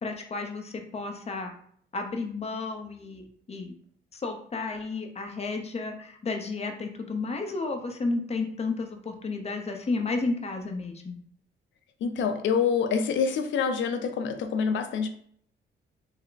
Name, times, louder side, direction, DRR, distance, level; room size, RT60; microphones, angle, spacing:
voice 1, 0.0-1.5 1.9-3.7 4.1-11.2, left 3 dB, 30° left, 4 dB, 0.7 m, -32 dB
voice 2, 12.0-15.1, left 6 dB, 70° left, 8 dB, 0.5 m, -26 dB
3.3 x 2.1 x 3.9 m, 0.62 s
cardioid pair, 90°, 20 cm